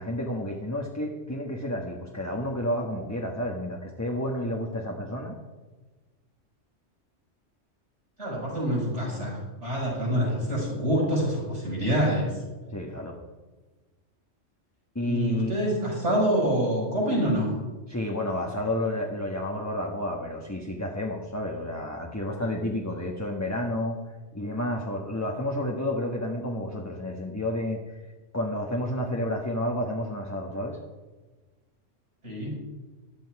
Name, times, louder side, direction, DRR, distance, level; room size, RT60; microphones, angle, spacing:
voice 1, 0.0-5.4 12.7-13.1 14.9-15.5 17.9-24.0 24.3-28.0 28.3-30.8, left 1 dB, 15° left, 0 dB, 1.4 m, -30 dB
voice 2, 8.2-12.3 15.0-17.5 32.2-32.5, equal, 65° right, -3 dB, 6.1 m, -26 dB
14.5 x 12.0 x 4.8 m, 1.3 s
omnidirectional pair, 1.3 m